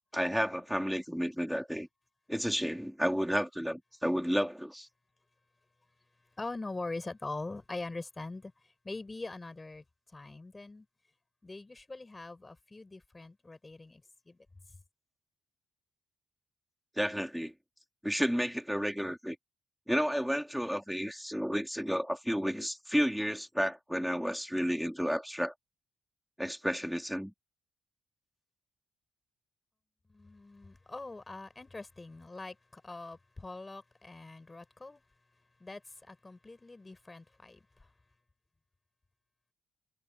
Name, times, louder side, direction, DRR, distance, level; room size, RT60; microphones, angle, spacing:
voice 1, 0.1-1.9 2.3-4.9 17.0-17.5 18.0-19.4 19.9-25.5 26.4-27.3, equal, ahead, 4.0 m, -31 dB
voice 2, 6.4-8.5 8.8-9.8 10.1-10.9 11.4-14.0 14.3-14.4 30.1-35.0 35.6-37.6, left 2 dB, 20° left, 6.9 m, -43 dB
cardioid pair, 90°, 0 cm